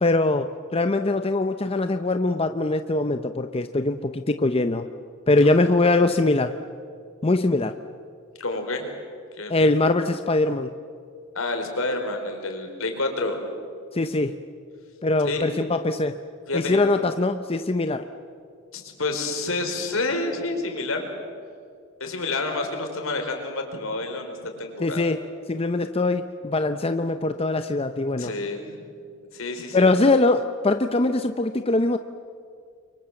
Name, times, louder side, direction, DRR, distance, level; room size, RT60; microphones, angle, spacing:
voice 1, 0.0-4.9 5.3-6.5 7.2-7.7 9.5-10.7 13.9-14.3 15.0-16.2 16.5-18.1 24.8-25.2 25.5-28.3 29.7-32.0, left 2 dB, 30° left, 8 dB, 0.7 m, -22 dB
voice 2, 8.4-8.9 9.4-9.7 11.3-13.4 15.2-15.5 16.5-16.8 18.7-21.1 22.0-25.0 28.2-28.9 29.3-29.9, left 2 dB, 70° left, 4 dB, 4.6 m, -29 dB
29.0 x 24.0 x 7.8 m, 2.3 s
head